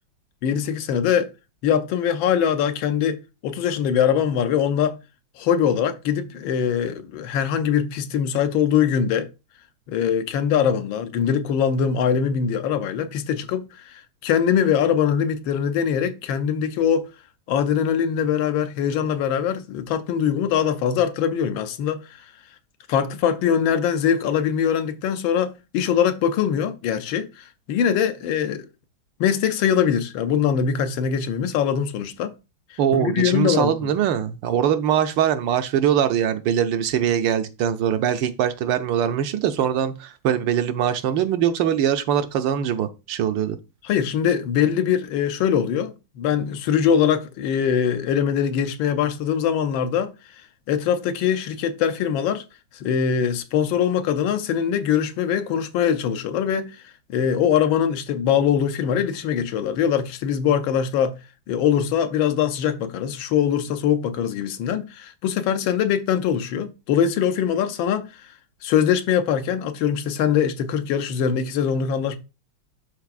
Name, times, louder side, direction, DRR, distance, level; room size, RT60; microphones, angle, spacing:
voice 1, 0.4-1.3 1.6-5.0 5.4-9.3 9.9-17.1 17.5-22.0 22.9-28.7 29.2-32.3 32.9-33.7 43.8-50.1 50.7-52.4 52.8-56.8 57.1-61.2 61.5-68.1 68.6-72.2, left 8 dB, 80° left, 1.4 m, -22 dB
voice 2, 32.8-43.6, right 9 dB, 75° right, 1.3 m, -22 dB
11.5 x 3.9 x 2.4 m
omnidirectional pair, 2.2 m